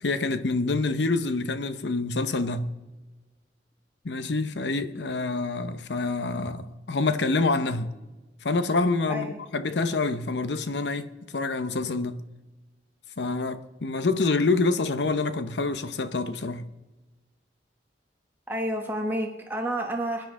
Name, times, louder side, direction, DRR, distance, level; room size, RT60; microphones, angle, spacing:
voice 1, 0.0-2.7 4.0-7.9 8.4-12.2 13.2-16.7, left 3 dB, 85° left, 0.8 m, -27 dB
voice 2, 18.5-20.2, right 1 dB, 10° right, 1.2 m, -30 dB
22.5 x 10.0 x 3.7 m
head